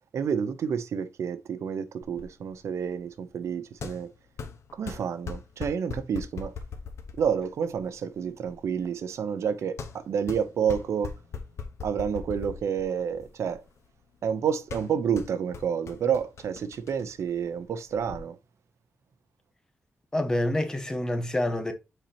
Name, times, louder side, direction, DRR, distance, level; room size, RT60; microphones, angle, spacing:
voice 1, 0.1-4.1 4.8-6.5 7.2-11.1 11.8-13.6 14.2-18.4, right 7 dB, 75° right, 0.7 m, -29 dB
sound 1, 2.0-18.2, left 5 dB, 70° left, 1.0 m, -42 dB
voice 2, 20.1-21.7, left 1 dB, 15° left, 1.0 m, -27 dB
7.8 x 4.4 x 2.8 m
wide cardioid pair, 180°, 5 cm